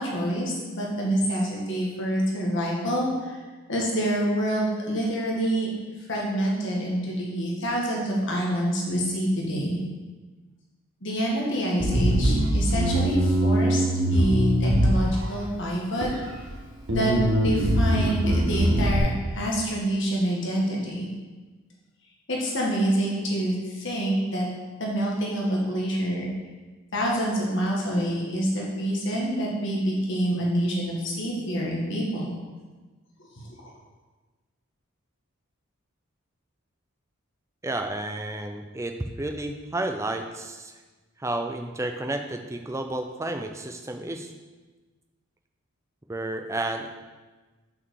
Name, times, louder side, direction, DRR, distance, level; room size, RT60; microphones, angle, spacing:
voice 1, 0.0-3.4 3.7-5.7 6.1-9.8 11.0-13.8 14.1-16.1 16.9-17.1 17.4-21.1 22.3-24.5 24.8-26.3 26.9-32.3 33.2-33.5, right 1 dB, 55° left, -3 dB, 1.5 m, -27 dB
Bass guitar, 11.8-15.4 16.0-16.5 16.9-19.0, right 1 dB, 65° right, 1.4 m, -22 dB
voice 2, 37.6-40.7 41.2-44.3 46.1-46.9, right 2 dB, 15° right, 6 dB, 0.4 m, -31 dB
5.9 x 4.7 x 6.3 m, 1.3 s
head